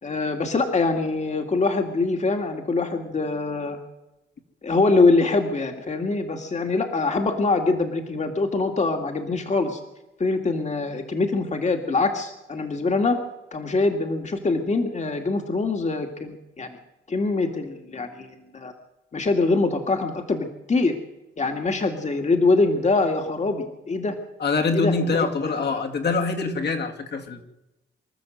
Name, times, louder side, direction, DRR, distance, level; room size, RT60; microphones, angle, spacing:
voice 1, 0.0-3.8 4.6-9.8 10.2-13.2 13.5-16.7 17.1-18.7 19.1-20.9 21.4-24.2 24.7-25.8, left 3 dB, 35° left, 4 dB, 2.3 m, -24 dB
voice 2, 24.4-27.4, left 4 dB, 55° left, 3 dB, 2.8 m, -24 dB
25.5 x 13.0 x 8.0 m, 0.97 s
cardioid pair, 100°, 21 cm